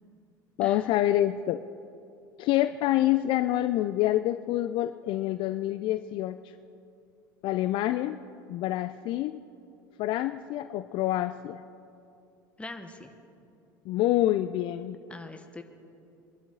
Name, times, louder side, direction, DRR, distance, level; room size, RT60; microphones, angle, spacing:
voice 1, 0.6-1.6 2.4-6.4 7.4-8.2 8.5-9.4 10.0-11.6 13.9-15.0, left 14 dB, 50° left, 12 dB, 0.4 m, -27 dB
voice 2, 12.6-13.1 15.1-15.6, left 2 dB, 10° left, 6 dB, 1.3 m, -42 dB
23.0 x 12.0 x 3.9 m, 2.6 s
figure-of-eight pair, 70°, 11 cm